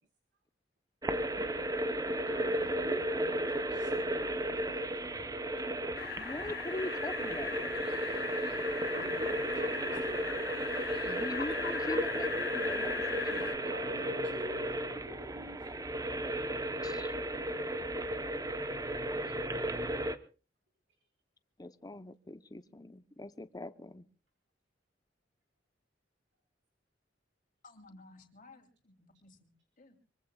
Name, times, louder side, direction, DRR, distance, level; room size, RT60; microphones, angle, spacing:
sound 1, 1.0-20.2, right 1 dB, 20° right, 0.9 m, -34 dB
voice 1, 2.0-5.2 9.0-10.3 13.7-15.7, equal, 70° right, 2 dB, 4.0 m, -47 dB
sound 2, 6.0-13.6, left 6 dB, 60° left, 2.1 m, -39 dB
voice 2, 6.2-7.6 11.0-13.9 16.8-17.2 19.2-19.4 21.6-24.1, left 2 dB, 20° left, 12 dB, 0.7 m, -42 dB
voice 3, 27.6-29.5 29.8-30.0, left 2 dB, 45° left, 4 dB, 3.2 m, -56 dB
24.5 x 23.5 x 2.3 m, 0.34 s
head